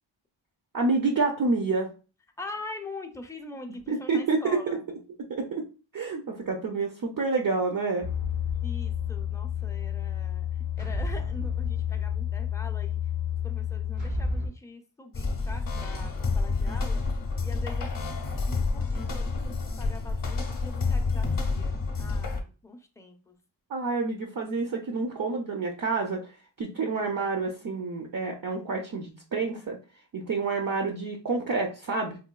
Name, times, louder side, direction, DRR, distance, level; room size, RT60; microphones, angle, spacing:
voice 1, 0.7-1.9 3.9-4.8 5.4-5.6 5.9-8.1 23.7-26.3 26.6-29.8 30.1-32.2, right 3 dB, 45° right, 2 dB, 0.5 m, -28 dB
voice 2, 2.4-4.8 8.6-10.5 10.8-13.0 13.4-17.0 17.4-23.4, left 2 dB, 5° left, 4 dB, 0.4 m, -43 dB
sound 1, 8.0-14.5, left 7 dB, 90° right, 1.2 m, -30 dB
sound 2, 15.1-22.4, left 4 dB, 45° left, 0.6 m, -29 dB
3.8 x 2.6 x 2.2 m, 0.34 s
wide cardioid pair, 105°, 47 cm